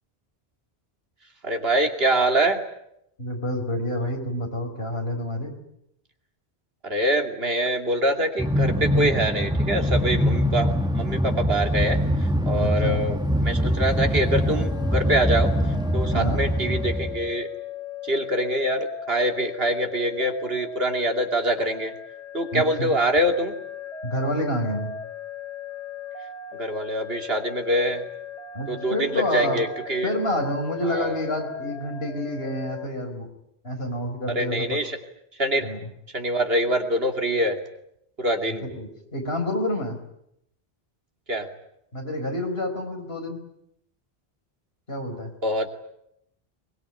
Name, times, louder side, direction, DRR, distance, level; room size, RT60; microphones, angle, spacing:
voice 1, 1.4-2.6 6.8-12.0 12.5-13.2 13.4-15.5 15.9-17.5 18.0-21.9 22.3-23.6 26.5-28.0 28.7-30.1 30.9-31.1 34.3-34.9 35.4-35.7 36.1-37.6 38.2-38.6 41.3-41.5 45.4-45.7, right 1 dB, 65° right, 4 dB, 2.9 m, -24 dB
voice 2, 3.2-5.6 12.6-13.0 16.1-16.4 22.5-22.9 24.0-24.9 28.5-29.6 30.0-33.3 33.6-34.9 35.6-35.9 38.5-40.0 41.9-43.4 44.9-45.3, left 1 dB, 65° left, 4 dB, 5.0 m, -28 dB
Train, 8.4-17.3, equal, 5° right, 1.7 m, -23 dB
sound 1, 14.2-32.9, left 8 dB, 35° left, 2.9 m, -38 dB
22.5 x 22.0 x 9.9 m, 0.79 s
omnidirectional pair, 1.1 m